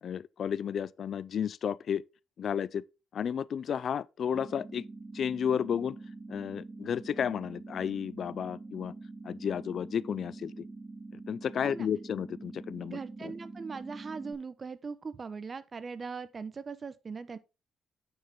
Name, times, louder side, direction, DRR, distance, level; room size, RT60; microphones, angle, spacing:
voice 1, 0.0-2.0 2.4-2.8 3.1-4.8 5.1-6.0 6.3-8.9 9.2-10.7 11.3-13.3, left 8 dB, 60° left, 0.4 m, -32 dB
sound 1, 4.3-14.3, right 3 dB, 10° right, 3.4 m, -45 dB
voice 2, 12.9-17.4, right 5 dB, 35° right, 1.0 m, -40 dB
9.4 x 6.7 x 3.7 m
cardioid pair, 90°, 0 cm